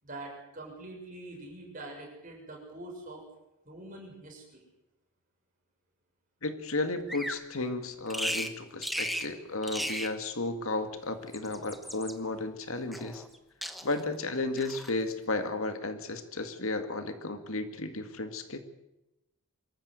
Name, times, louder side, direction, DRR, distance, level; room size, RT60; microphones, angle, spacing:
voice 1, 0.0-3.2 3.7-4.6, right 2 dB, 35° right, 0 dB, 7.0 m, -44 dB
voice 2, 6.4-13.2 13.8-18.6, left 2 dB, 70° left, 8 dB, 2.1 m, -33 dB
Bird vocalization bird call bird song, 7.1-7.4 8.1-8.5 8.8-9.3 9.6-10.1 11.2-12.1 12.9-13.4 13.6-14.1 14.6-14.9, equal, ahead, 1.1 m, -36 dB
24.5 x 14.0 x 8.2 m, 0.93 s
head